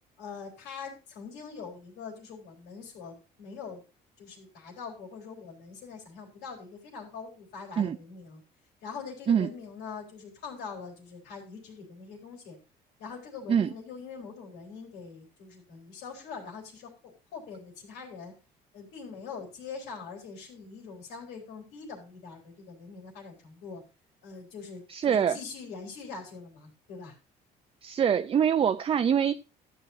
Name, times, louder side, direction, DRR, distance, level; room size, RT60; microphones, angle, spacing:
voice 1, 0.2-3.8 4.2-8.4 8.8-12.6 13.0-18.3 18.7-23.8 24.2-27.1, left 5 dB, 90° left, 3.6 m, -43 dB
voice 2, 24.9-25.4 27.8-29.4, right 8 dB, 30° right, 0.4 m, -24 dB
12.5 x 9.6 x 2.7 m
cardioid pair, 110°, 17 cm